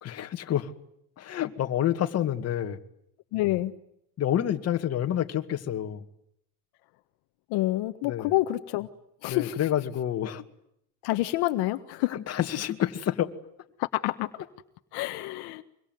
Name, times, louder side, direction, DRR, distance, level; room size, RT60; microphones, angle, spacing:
voice 1, 0.0-0.7 1.2-2.8 4.2-6.0 8.0-8.3 9.3-10.4 12.1-13.3, left 11 dB, 40° left, 2.2 m, -28 dB
voice 2, 3.3-3.7 7.5-8.9 9.2-9.6 11.0-12.2 13.8-14.3 14.9-15.6, left 17 dB, 75° left, 1.5 m, -28 dB
25.0 x 24.5 x 9.4 m
cardioid pair, 145°, 39 cm